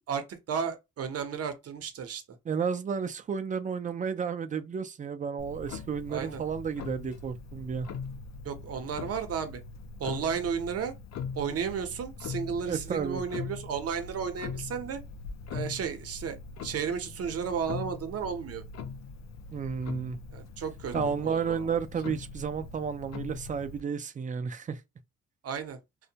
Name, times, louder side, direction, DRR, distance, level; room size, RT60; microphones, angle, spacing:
voice 1, 0.0-2.2 6.1-6.4 8.4-9.6 10.0-10.9 11.3-15.0 15.5-16.4 16.6-18.6 20.3-20.9 21.2-21.7 25.4-25.8, right 7 dB, 55° right, 0.7 m, -33 dB
voice 2, 2.5-7.9 12.7-13.2 19.5-20.2 20.9-24.8, right 6 dB, 25° right, 0.4 m, -32 dB
Clock, 5.4-23.8, left 5 dB, 65° left, 0.5 m, -41 dB
2.5 x 2.1 x 2.8 m
cardioid pair, 90°, 30 cm